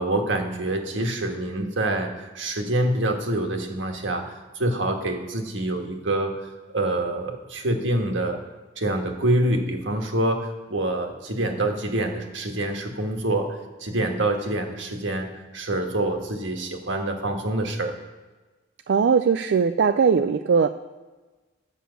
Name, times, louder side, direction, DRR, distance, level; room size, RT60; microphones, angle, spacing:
voice 1, 0.0-6.3 6.7-8.4 8.8-15.3 15.5-17.9, right 1 dB, 85° right, 3 dB, 1.5 m, -26 dB
voice 2, 18.9-20.7, right 6 dB, 65° right, 9 dB, 0.4 m, -20 dB
10.5 x 6.3 x 8.1 m, 1.3 s
head